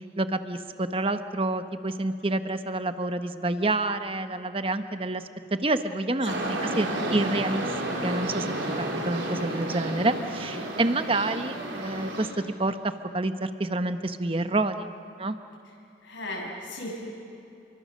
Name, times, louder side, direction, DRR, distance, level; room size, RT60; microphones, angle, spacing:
voice 1, 0.2-5.2 5.5-8.5 8.8-14.9 15.2-15.4, right 2 dB, 30° right, 9 dB, 0.9 m, -28 dB
voice 2, 6.2-7.1 16.0-17.1, left 1 dB, 80° left, -2 dB, 7.0 m, -37 dB
sound 1, 6.2-12.3, right 1 dB, 85° right, 4.4 m, -31 dB
30.0 x 23.5 x 6.6 m, 2.7 s
head